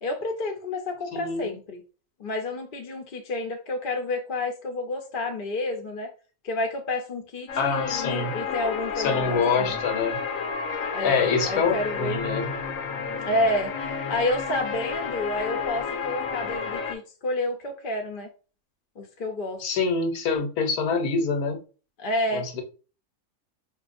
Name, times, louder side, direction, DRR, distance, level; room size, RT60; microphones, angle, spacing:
voice 1, 0.0-1.8 2.2-6.1 6.4-9.8 10.9-12.2 13.3-13.7 14.1-18.3 19.0-19.6 22.0-22.5, left 2 dB, 50° left, 3 dB, 0.6 m, -29 dB
voice 2, 1.1-1.6 7.6-8.4 9.0-10.2 11.0-12.5 19.6-21.6 22.3-22.6, left 5 dB, 90° left, 4 dB, 1.3 m, -25 dB
sound 1, 7.5-16.9, left 5 dB, 70° left, 0.9 m, -31 dB
4.6 x 2.7 x 2.5 m, 0.36 s
omnidirectional pair, 1.5 m